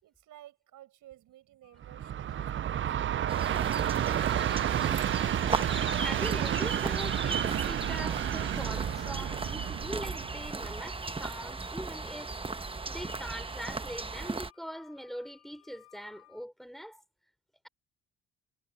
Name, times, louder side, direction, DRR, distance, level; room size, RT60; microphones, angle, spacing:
voice 1, 0.0-3.6, right 13 dB, 80° right, 5.6 m, -55 dB
sound 1, 1.6-16.5, left 20 dB, 55° left, 4.3 m, -61 dB
Train, 1.8-11.0, right 10 dB, 40° right, 0.5 m, -31 dB
sound 2, 3.3-14.5, right 3 dB, 20° right, 1.1 m, -37 dB
voice 2, 6.0-12.4 12.9-17.0, equal, ahead, 3.8 m, -42 dB
cardioid pair, 90°, 30 cm